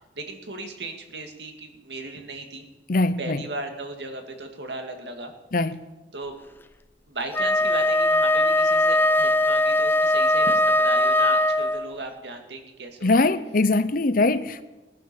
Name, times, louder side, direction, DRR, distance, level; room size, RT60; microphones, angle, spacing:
voice 1, 0.2-2.7 3.2-5.3 6.1-6.3 7.1-13.3, right 2 dB, 70° right, 2.2 m, -36 dB
voice 2, 2.9-3.4 5.5-5.8 13.0-14.6, left 2 dB, 50° left, 0.8 m, -22 dB
Wind instrument woodwind instrument, 7.3-11.9, left 1 dB, 10° left, 0.5 m, -20 dB
18.5 x 9.9 x 6.9 m
head